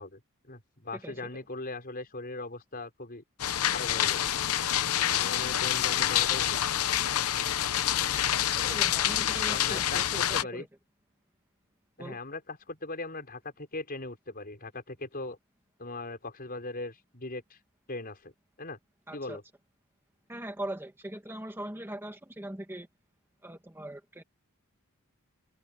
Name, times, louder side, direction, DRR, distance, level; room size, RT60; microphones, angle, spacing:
voice 1, 0.0-3.2 3.7-4.2 5.1-6.6 8.7-8.8 9.5-10.7 12.0-15.4 15.8-17.6 17.9-18.3 18.6-18.8 19.1-19.4, left 2 dB, 45° left, 5.5 m, -39 dB
sound 1, 3.4-10.4, left 11 dB, 80° left, 0.7 m, -27 dB
voice 2, 8.6-10.7 12.0-12.2 19.1-19.4 20.3-22.9 23.4-24.2, right 1 dB, 10° right, 1.6 m, -40 dB
head